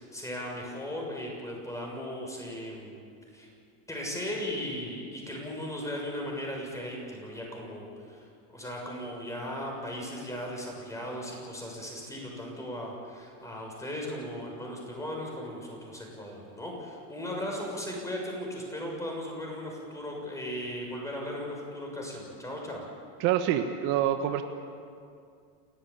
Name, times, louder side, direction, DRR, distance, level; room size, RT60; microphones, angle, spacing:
voice 1, 0.0-3.0 3.3-3.5 3.9-22.9, equal, 5° left, -1 dB, 6.7 m, -37 dB
voice 2, 23.2-24.4, right 11 dB, 60° right, 7 dB, 1.5 m, -26 dB
29.0 x 15.0 x 8.7 m, 2.3 s
supercardioid pair, 145°, 44 cm